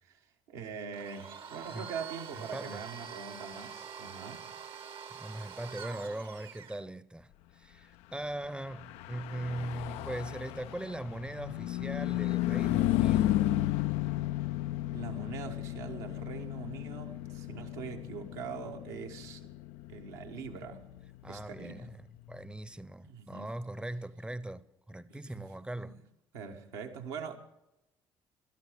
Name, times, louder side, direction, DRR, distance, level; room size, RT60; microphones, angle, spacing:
voice 1, 0.0-4.5 14.9-19.5 19.9-20.9 21.3-21.9 23.0-23.5 25.1-25.4 25.8-25.9 26.3-27.4, right 6 dB, 75° right, 1.4 m, -43 dB
Domestic sounds home sounds, 0.9-6.8, right 7 dB, 50° right, 1.1 m, -45 dB
voice 2, 2.3-2.9 5.1-13.4 21.2-22.0 22.3-26.0, right 1 dB, 10° right, 0.7 m, -40 dB
Car passing by / Truck, 8.6-22.3, left 14 dB, 70° left, 0.4 m, -33 dB
18.0 x 12.5 x 5.1 m
hypercardioid pair, 50°, 11 cm